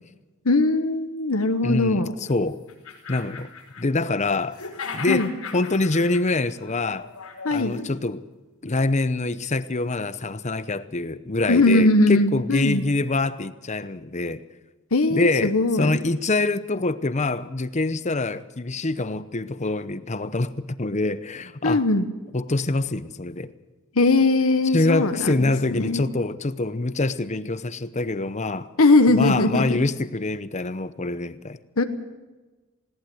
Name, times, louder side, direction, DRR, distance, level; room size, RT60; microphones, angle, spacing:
voice 1, 0.4-2.1 5.1-5.3 7.4-7.7 11.5-12.8 14.9-16.0 21.6-22.1 23.9-26.0 28.8-29.8 31.8-31.9, left 2 dB, 65° left, 1.2 m, -20 dB
voice 2, 1.6-2.6 3.1-3.5 3.8-4.6 4.9-5.3 5.5-7.1 7.5-8.2 8.6-14.4 15.1-21.8 22.3-23.5 24.7-28.7 29.2-31.6, left 2 dB, 30° left, 0.8 m, -25 dB
sound 1, 2.3-2.4 2.7-4.2 4.5-7.9, left 5 dB, 80° left, 4.8 m, -38 dB
20.5 x 18.0 x 7.9 m
head